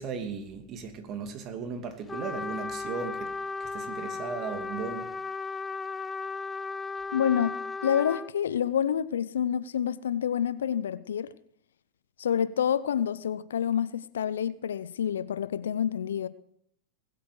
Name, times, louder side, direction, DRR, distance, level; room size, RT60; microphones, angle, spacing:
voice 1, 0.0-3.3 3.6-5.1, right 5 dB, 40° right, 2.7 m, -36 dB
Trumpet, 2.1-8.3, left 4 dB, 15° left, 0.6 m, -35 dB
voice 2, 7.1-7.6 7.8-11.3 12.2-16.3, left 9 dB, 75° left, 0.7 m, -28 dB
20.5 x 8.6 x 6.5 m
hypercardioid pair, 95°, 0 cm